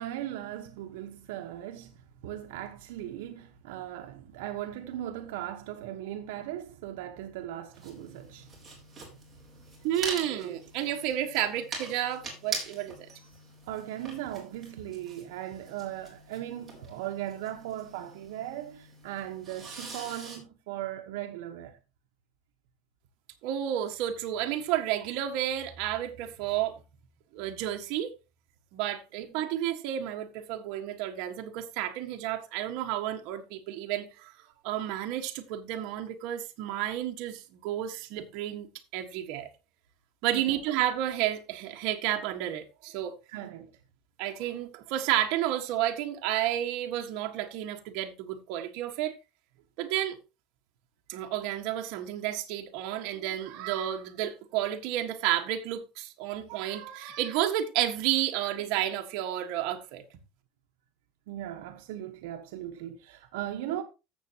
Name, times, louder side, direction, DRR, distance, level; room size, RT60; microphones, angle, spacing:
voice 1, 0.0-1.9 2.2-8.5 10.3-10.5 13.7-21.8 40.3-40.6 43.3-43.7 61.3-63.8, right 12 dB, 75° right, 1.2 m, -38 dB
sound 1, 7.7-20.4, right 3 dB, 10° right, 3.8 m, -43 dB
voice 2, 9.8-13.1 23.4-26.8 27.3-28.1 28.7-34.3 34.6-39.5 40.2-43.1 44.2-49.1 49.8-50.2 51.1-60.0, right 12 dB, 50° right, 1.6 m, -31 dB
14.5 x 7.5 x 3.0 m
cardioid pair, 175°, 0 cm